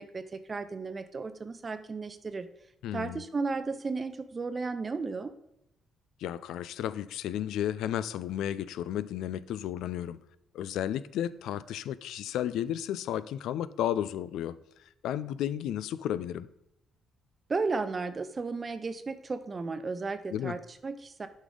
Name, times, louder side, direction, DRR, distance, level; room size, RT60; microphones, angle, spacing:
voice 1, 0.0-2.5 2.9-5.3 17.5-21.3, right 4 dB, 35° right, 0.5 m, -34 dB
voice 2, 2.8-3.2 6.2-10.2 10.5-14.6 15.0-16.5 20.3-20.6, left 11 dB, 85° left, 0.3 m, -33 dB
8.3 x 5.3 x 3.7 m
cardioid pair, 90°, 0 cm